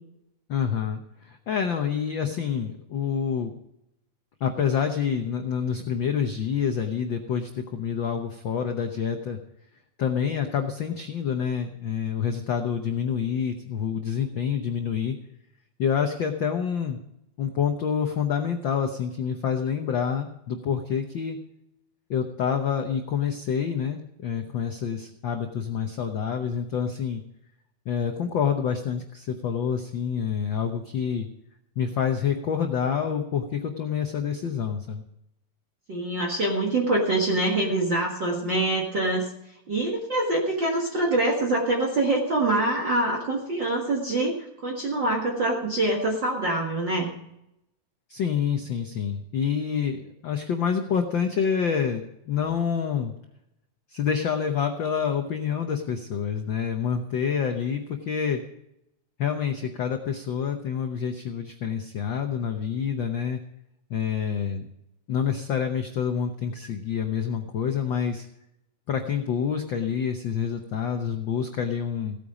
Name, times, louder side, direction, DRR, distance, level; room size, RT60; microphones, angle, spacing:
voice 1, 0.5-3.6 4.4-9.4 10.0-15.1 15.8-17.0 17.4-21.4 22.1-27.2 27.8-31.3 31.8-35.0 48.1-53.1 53.9-58.4 59.2-63.4 63.9-64.6 65.1-68.3 68.9-72.2, left 7 dB, 75° left, 5 dB, 1.0 m, -27 dB
voice 2, 35.9-39.3 39.7-44.3 44.6-47.1, right 2 dB, 45° right, -1 dB, 2.0 m, -25 dB
16.5 x 9.1 x 4.9 m, 0.83 s
omnidirectional pair, 3.5 m